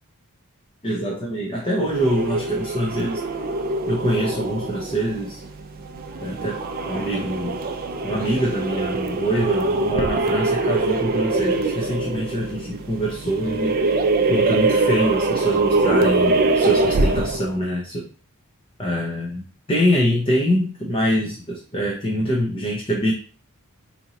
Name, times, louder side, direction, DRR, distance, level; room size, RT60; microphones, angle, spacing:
voice 1, 0.8-3.2 3.9-5.4 6.2-7.6 8.0-13.8 14.3-18.1 18.8-23.1, equal, 25° left, -2 dB, 0.6 m, -24 dB
sound 1, 1.8-17.5, right 2 dB, 40° right, 0.4 m, -23 dB
4.2 x 2.8 x 2.8 m, 0.40 s
head